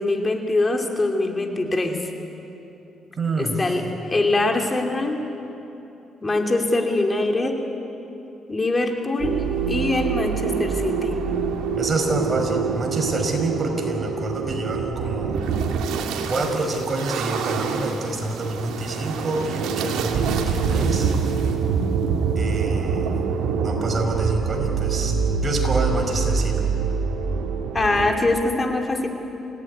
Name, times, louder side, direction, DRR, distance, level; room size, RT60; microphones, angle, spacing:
voice 1, 0.0-2.0 3.4-5.2 6.2-7.6 8.5-11.2 27.7-29.1, left 2 dB, 25° left, 3 dB, 2.8 m, -23 dB
voice 2, 3.2-3.6 11.8-15.5 16.2-21.1 22.3-23.1 23.6-25.1 25.4-26.6, right 2 dB, 35° right, 3 dB, 4.9 m, -27 dB
sound 1, 9.2-28.1, right 6 dB, 90° right, 2.2 m, -25 dB
27.0 x 17.0 x 9.6 m, 3.0 s
cardioid pair, 90°, 0 cm